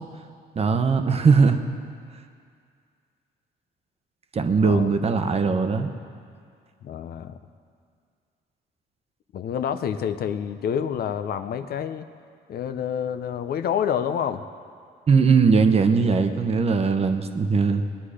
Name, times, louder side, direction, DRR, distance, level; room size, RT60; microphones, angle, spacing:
voice 1, 0.6-1.6 4.3-5.9 15.1-17.8, right 5 dB, 35° right, 7 dB, 0.9 m, -20 dB
voice 2, 4.6-4.9 6.8-7.4 9.3-12.1 12.5-14.4, left 8 dB, 60° left, 9 dB, 0.7 m, -28 dB
19.5 x 9.9 x 5.0 m, 2.2 s
cardioid pair, 120°, 18 cm